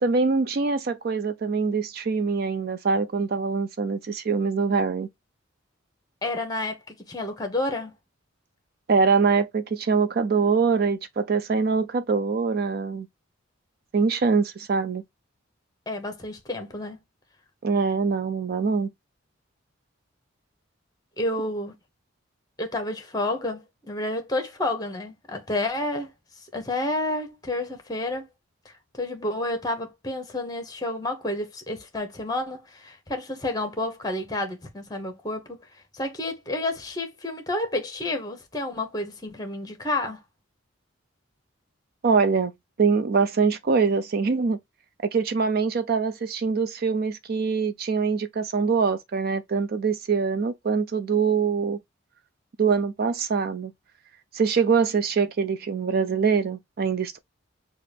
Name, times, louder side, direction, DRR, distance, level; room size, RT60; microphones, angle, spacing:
voice 1, 0.0-5.1 8.9-13.1 13.9-15.0 17.6-18.9 42.0-42.5 42.8-44.6 45.0-51.8 52.6-53.7 54.3-57.2, right 5 dB, 45° right, 0.4 m, -24 dB
voice 2, 6.2-7.9 15.9-17.0 21.2-21.7 22.6-26.1 26.5-28.3 28.6-35.6 35.9-40.2, left 2 dB, 20° left, 1.0 m, -30 dB
5.7 x 2.5 x 3.3 m
head